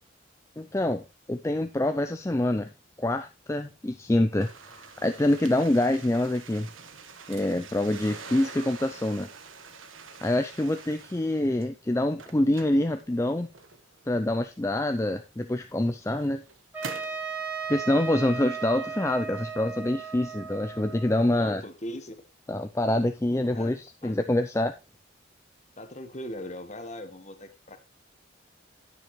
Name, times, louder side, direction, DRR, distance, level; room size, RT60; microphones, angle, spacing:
voice 1, 0.6-2.7 3.0-6.7 7.3-9.3 10.2-13.5 14.1-16.4 17.7-21.6 22.5-24.7, left 1 dB, 15° left, 8 dB, 0.4 m, -26 dB
sound 1, 4.4-11.6 12.0-14.0 15.0-15.1 15.8-17.2, right 5 dB, 85° right, 1.4 m, -45 dB
Trumpet, 16.7-21.6, right 5 dB, 10° right, 2.6 m, -36 dB
voice 2, 21.3-22.1 23.5-24.2 25.8-27.8, left 1 dB, 35° left, 8 dB, 1.3 m, -40 dB
10.0 x 9.3 x 3.1 m, 0.26 s
head